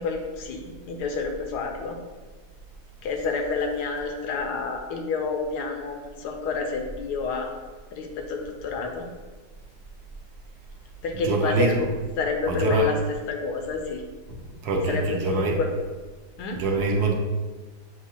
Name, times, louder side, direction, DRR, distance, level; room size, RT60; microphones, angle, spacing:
voice 1, 0.0-2.0 3.0-7.5 7.9-9.1 11.0-11.8 12.2-13.0 13.3-14.0 14.9-15.7 16.4-16.6, left 4 dB, 80° left, 3 dB, 1.2 m, -29 dB
voice 2, 11.2-11.7 12.5-12.9 14.3-14.4 14.6-15.6 16.5-17.1, right 3 dB, 75° right, 0 dB, 1.2 m, -24 dB
6.9 x 2.4 x 2.7 m, 1.3 s
omnidirectional pair, 1.8 m